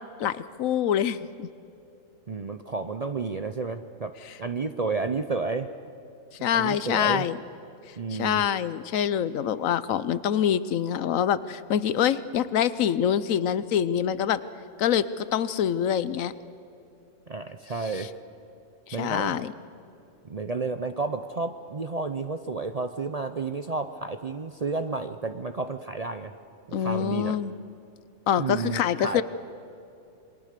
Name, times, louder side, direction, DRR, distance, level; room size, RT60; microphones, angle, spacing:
voice 1, 0.2-1.5 6.4-7.4 8.2-14.4 14.8-16.3 17.9-18.1 18.9-19.5 26.7-27.5 28.3-29.2, left 9 dB, 75° left, 16 dB, 1.1 m, -25 dB
voice 2, 2.3-5.7 6.5-7.2 8.0-8.4 17.3-18.1 18.9-19.4 20.2-26.3 26.7-27.4 28.4-29.2, right 4 dB, 40° right, 9 dB, 0.5 m, -31 dB
27.5 x 22.5 x 6.7 m, 2.7 s
omnidirectional pair, 1.4 m